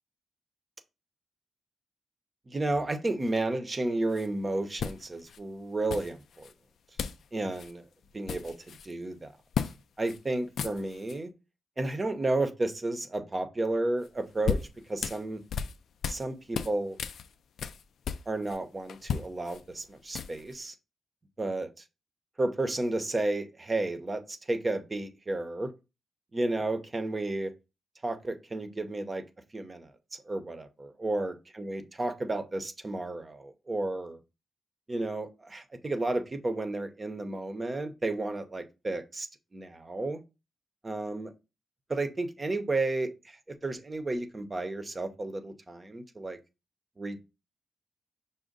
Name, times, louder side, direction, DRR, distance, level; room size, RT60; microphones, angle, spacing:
voice 1, 2.5-6.5 7.3-7.8 8.1-8.5 8.9-9.3 10.0-11.3 11.8-14.6 14.9-15.4 16.1-17.0 18.3-20.7 21.4-21.7 22.4-25.7 26.3-27.5 28.0-29.2 29.5-29.9 30.3-34.2 34.9-39.3 39.5-40.2 40.8-41.3 41.9-43.1 43.6-46.4 47.0-47.2, right 2 dB, 30° right, 0.7 m, -32 dB
sound 1, 4.1-4.3 4.8-5.4 5.9-6.5 7.0-7.3 7.5-7.7 8.0-8.9 9.5-9.8 10.1-10.2 10.5-11.2 14.0-16.3 16.5-18.6 18.9-20.5, left 7 dB, 75° left, 0.3 m, -35 dB
5.3 x 2.2 x 3.8 m
cardioid pair, 60°, 0 cm